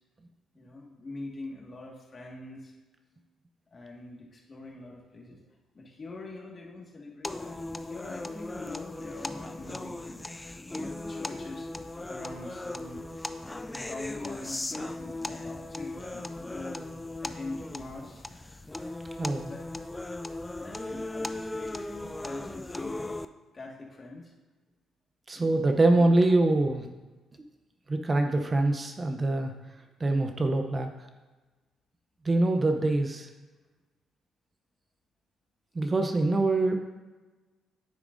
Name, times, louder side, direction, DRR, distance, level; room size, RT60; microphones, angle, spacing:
voice 1, 0.5-2.7 3.7-5.4 5.7-10.2 10.7-11.7 12.1-13.0 13.9-16.8 17.2-18.4 19.5-19.6 20.6-23.0 23.5-24.3 25.3-26.1, left 2 dB, 35° left, -2 dB, 1.7 m, -43 dB
sound 1, 7.2-23.3, left 2 dB, 15° left, 0.4 m, -38 dB
voice 2, 19.2-19.5 25.3-26.9 27.9-29.5 30.0-30.9 32.2-33.3 35.7-36.7, right 2 dB, 30° right, 5 dB, 0.6 m, -24 dB
9.5 x 7.2 x 2.6 m, 1.2 s
cardioid pair, 90°, 0 cm